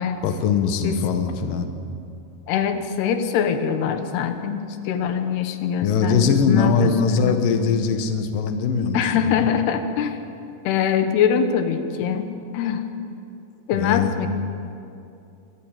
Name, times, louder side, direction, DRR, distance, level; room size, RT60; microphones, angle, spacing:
voice 1, 0.2-1.7 5.8-9.5 13.7-14.1, left 5 dB, 65° left, 6 dB, 2.8 m, -21 dB
voice 2, 2.5-7.4 8.9-10.2 10.6-12.3 12.5-12.9 13.7-14.3, left 7 dB, 90° left, 8 dB, 3.2 m, -23 dB
24.5 x 13.5 x 9.1 m, 2.6 s
omnidirectional pair, 4.5 m